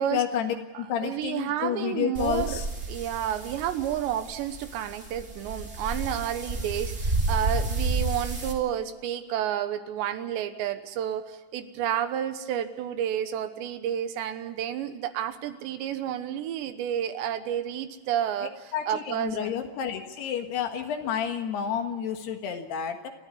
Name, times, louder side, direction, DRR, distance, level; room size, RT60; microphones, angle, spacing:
voice 1, 0.0-2.7 18.7-23.1, left 8 dB, 65° left, 6 dB, 3.4 m, -30 dB
voice 2, 0.7-19.5, right 10 dB, 75° right, 10 dB, 3.2 m, -31 dB
sound 1, 2.1-8.5, right 2 dB, 25° right, 2.0 m, -31 dB
29.5 x 13.0 x 9.8 m, 1.3 s
omnidirectional pair, 5.3 m